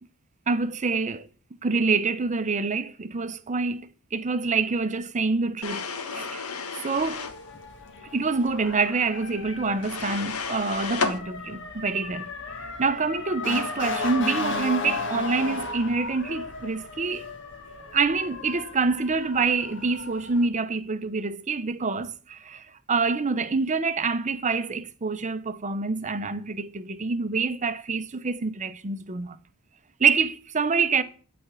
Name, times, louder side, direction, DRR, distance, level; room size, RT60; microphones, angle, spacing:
voice 1, 0.5-1.3 1.6-6.4 6.8-7.2 8.1-12.3 12.8-17.2 17.9-29.4 30.0-31.0, right 4 dB, 35° right, 0.7 m, -26 dB
sound 1, 5.6-7.4 9.8-11.2, left 4 dB, 80° left, 1.5 m, -31 dB
Motor vehicle (road) / Siren, 6.9-20.5, left 3 dB, 60° left, 1.8 m, -35 dB
12.5 x 4.3 x 8.1 m
head